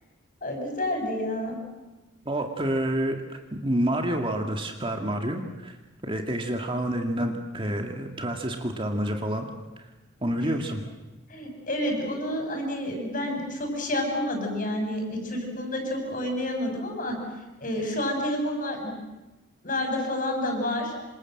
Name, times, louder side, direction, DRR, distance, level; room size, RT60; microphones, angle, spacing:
voice 1, 0.4-1.6 10.2-10.3 11.3-17.2 17.6-18.9 19.6-20.9, left 1 dB, 40° left, 3 dB, 6.8 m, -29 dB
voice 2, 2.3-5.8 6.0-9.5 9.8-9.9 10.2-10.8, right 1 dB, 25° right, 3 dB, 2.1 m, -28 dB
27.0 x 27.0 x 7.8 m, 1.1 s
head